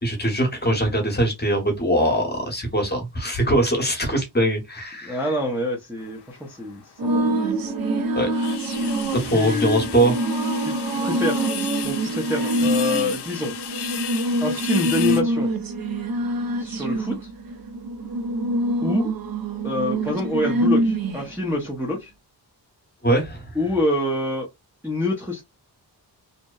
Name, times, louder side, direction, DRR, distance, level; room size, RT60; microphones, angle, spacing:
voice 1, 0.0-5.2 8.1-8.3 9.1-10.1 23.0-23.5, right 1 dB, 25° left, 0.9 m, -22 dB
voice 2, 5.0-7.3 9.1-9.9 10.6-11.5 11.8-13.5 14.4-15.5 16.6-17.2 18.8-19.1 19.6-22.1 23.6-24.5 24.8-25.4, left 2 dB, 5° right, 0.5 m, -26 dB
sound 1, 6.0-6.9 7.3-7.4 7.8-7.9 8.1-15.2, left 9 dB, 70° left, 0.5 m, -34 dB
sound 2, 7.0-21.4, right 1 dB, 55° right, 0.6 m, -25 dB
2.7 x 2.1 x 2.2 m
wide cardioid pair, 135°, 41 cm